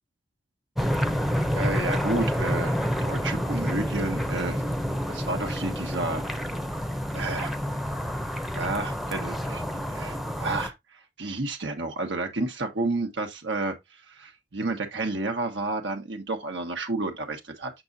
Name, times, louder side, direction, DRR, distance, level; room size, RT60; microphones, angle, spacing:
sound 1, 0.8-10.7, equal, ahead, 0.6 m, -28 dB
voice 1, 1.5-4.6 5.1-6.2 7.1-7.5 8.5-10.7 11.2-13.7 14.1-17.7, right 2 dB, 80° right, 1.2 m, -31 dB
6.2 x 5.9 x 2.6 m
head